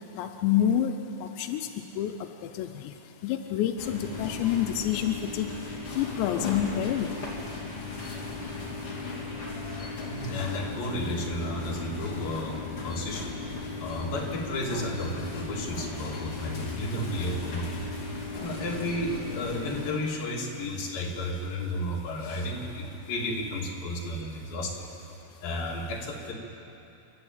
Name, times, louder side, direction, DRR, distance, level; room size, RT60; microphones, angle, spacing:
voice 1, 0.2-0.9 1.4-1.7 2.0-2.1 2.5-2.7 3.2-5.5 5.9-7.2, left 10 dB, 90° left, 5 dB, 3.1 m, -27 dB
sound 1, 3.8-19.9, left 3 dB, 35° left, 3.5 m, -36 dB
voice 2, 10.1-13.4 13.8-17.7 18.4-24.9 25.4-26.3, left 1 dB, 60° left, -2 dB, 4.2 m, -32 dB
29.0 x 12.5 x 8.9 m, 2.9 s
omnidirectional pair, 5.0 m